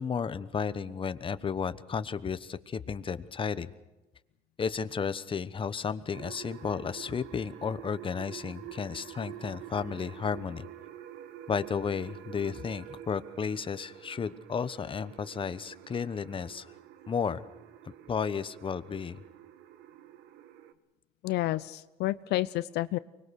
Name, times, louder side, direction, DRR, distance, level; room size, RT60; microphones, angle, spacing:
voice 1, 0.0-3.7 4.6-10.7 11.5-16.7 17.1-17.5 17.8-19.2, left 6 dB, 30° left, 13 dB, 1.0 m, -33 dB
sound 1, 6.1-20.7, right 11 dB, 90° right, 1.4 m, -48 dB
voice 2, 21.2-23.0, left 16 dB, 80° left, 15 dB, 0.6 m, -30 dB
24.5 x 21.0 x 6.5 m, 1.1 s
cardioid pair, 110°, 17 cm